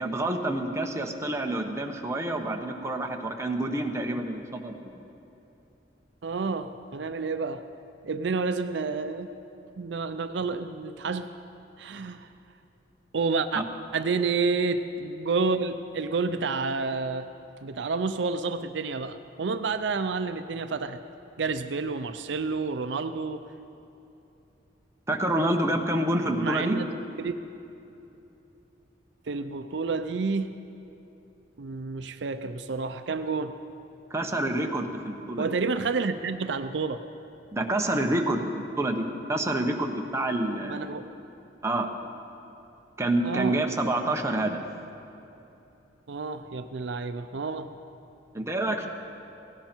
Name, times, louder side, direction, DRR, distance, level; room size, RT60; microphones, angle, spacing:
voice 1, 0.0-5.0 13.5-13.6 25.1-26.8 34.1-35.5 37.5-38.5 38.8-40.9 41.6-41.9 43.0-44.6 48.3-48.9, right 1 dB, 15° right, 2 dB, 1.1 m, -28 dB
voice 2, 6.2-7.6 8.0-9.3 9.8-11.3 11.8-12.3 13.1-13.6 13.9-17.3 17.6-21.0 21.4-23.4 26.4-26.8 27.2-27.3 29.3-30.6 31.6-33.6 35.4-37.0 40.6-41.1 43.2-43.6 46.1-47.7, right 4 dB, 70° right, 10 dB, 0.5 m, -29 dB
17.5 x 17.0 x 4.5 m, 2.9 s
head